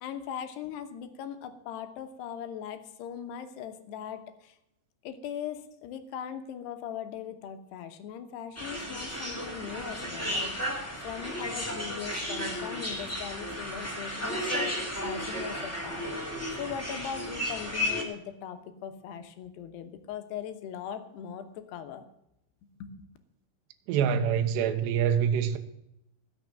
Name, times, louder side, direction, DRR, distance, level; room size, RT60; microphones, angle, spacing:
voice 1, 0.0-4.6 5.0-14.7 15.0-16.3 16.6-22.0 22.8-23.1, left 8 dB, 70° left, 2.7 m, -40 dB
sound 1, 8.5-18.0, equal, 5° left, 1.0 m, -34 dB
voice 2, 23.9-25.6, right 8 dB, 75° right, 2.9 m, -25 dB
19.0 x 6.4 x 7.4 m
omnidirectional pair, 5.8 m